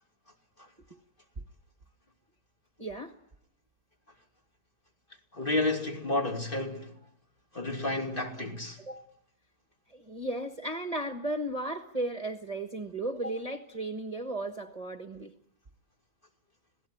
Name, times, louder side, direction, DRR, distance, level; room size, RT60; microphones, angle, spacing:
voice 1, 2.8-3.1 8.8-9.1 9.9-15.3, right 1 dB, 25° right, 1.3 m, -35 dB
voice 2, 5.3-6.9 7.5-8.8, left 2 dB, 35° left, 3.0 m, -31 dB
26.5 x 17.5 x 9.9 m
omnidirectional pair, 1.7 m